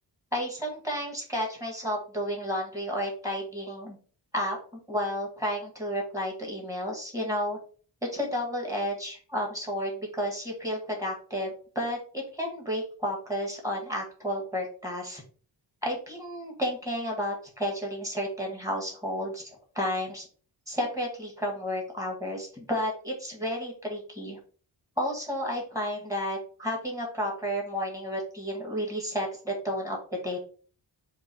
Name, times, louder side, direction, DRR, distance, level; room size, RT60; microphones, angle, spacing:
voice 1, 0.3-4.0 4.3-4.6 4.9-7.6 8.0-15.2 15.8-20.3 20.7-24.4 25.0-30.4, equal, 10° right, -1 dB, 1.5 m, -32 dB
4.5 x 2.6 x 4.1 m, 0.41 s
wide cardioid pair, 135°, 42 cm